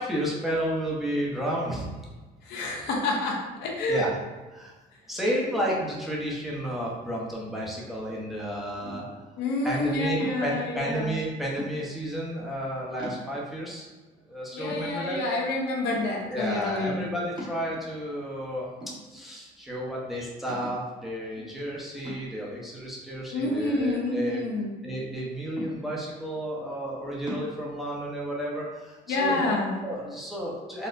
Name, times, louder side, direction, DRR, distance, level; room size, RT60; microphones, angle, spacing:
voice 1, 0.0-1.9 3.9-4.2 4.5-4.7 5.1-9.0 9.6-13.9 14.3-15.2 16.3-18.7 19.1-24.4 24.8-30.9, equal, ahead, -5 dB, 0.7 m, -32 dB
voice 2, 2.4-4.0 9.4-11.2 14.5-17.0 21.4-21.5 23.3-24.7 29.1-29.7, left 2 dB, 80° left, -2 dB, 0.7 m, -28 dB
sound 1, 8.8-9.3 10.2-10.6 11.6-12.1 12.6-12.7 13.0-13.6 14.2-14.3 14.7-15.4 15.9-16.3 17.4-18.1 18.8-19.4 19.8-19.9 20.5-20.9 22.0-22.5 23.5-24.4 25.6-26.2 27.3-27.5, equal, 25° right, 1.1 m, -40 dB
4.0 x 2.1 x 2.5 m, 1.2 s
cardioid pair, 110°, 17 cm